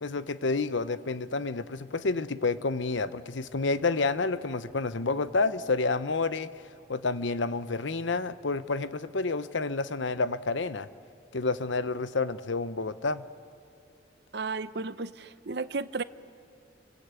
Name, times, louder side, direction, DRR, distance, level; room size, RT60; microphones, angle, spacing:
voice 1, 0.0-6.5 6.9-10.9 11.3-13.2, left 3 dB, 75° left, 14 dB, 0.8 m, -29 dB
voice 2, 14.3-16.0, right 4 dB, 55° right, 14 dB, 0.7 m, -33 dB
29.0 x 24.0 x 8.3 m, 2.4 s
head